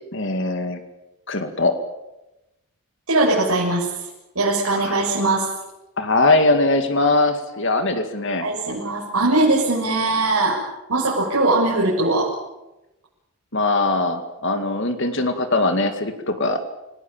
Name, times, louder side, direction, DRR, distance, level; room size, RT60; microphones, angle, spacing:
voice 1, 0.1-0.8 1.3-1.7 4.7-5.1 6.0-8.5 13.5-16.6, left 2 dB, 55° left, 7 dB, 2.2 m, -21 dB
voice 2, 3.1-3.9 4.4-5.5 8.4-10.6 10.9-12.3, right 2 dB, 80° right, -4 dB, 7.1 m, -20 dB
29.5 x 19.0 x 8.9 m, 0.98 s
head